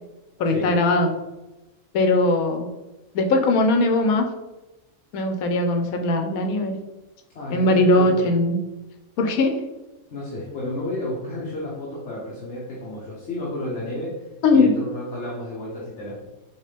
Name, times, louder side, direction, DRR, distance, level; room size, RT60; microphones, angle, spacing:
voice 1, 0.4-1.1 1.9-2.7 3.1-4.2 5.1-6.7 7.5-8.6 9.2-9.5 14.4-14.7, left 2 dB, 90° left, 5 dB, 1.1 m, -19 dB
voice 2, 7.3-8.3 10.1-14.2 14.5-16.2, left 1 dB, 60° left, -6 dB, 1.1 m, -32 dB
4.5 x 3.1 x 3.2 m, 1.0 s
omnidirectional pair, 1.4 m